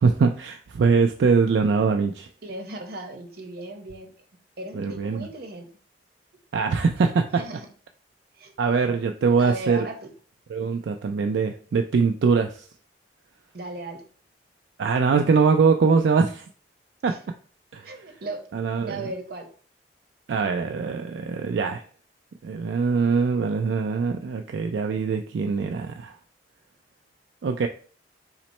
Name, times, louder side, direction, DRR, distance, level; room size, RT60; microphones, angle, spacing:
voice 1, 0.0-2.3 4.7-5.3 6.5-7.4 8.6-9.9 10.5-12.7 14.8-16.5 17.0-17.2 17.7-17.9 18.5-19.0 20.3-21.8 22.4-26.1 27.4-27.7, right 5 dB, 80° right, 5 dB, 0.4 m, -22 dB
voice 2, 2.4-4.1 4.6-5.7 7.4-7.7 8.4-8.5 9.4-10.1 13.5-14.0 17.1-17.2 17.8-18.4 18.9-19.5, right 2 dB, 60° right, 4 dB, 0.9 m, -36 dB
5.7 x 2.1 x 4.2 m, 0.42 s
head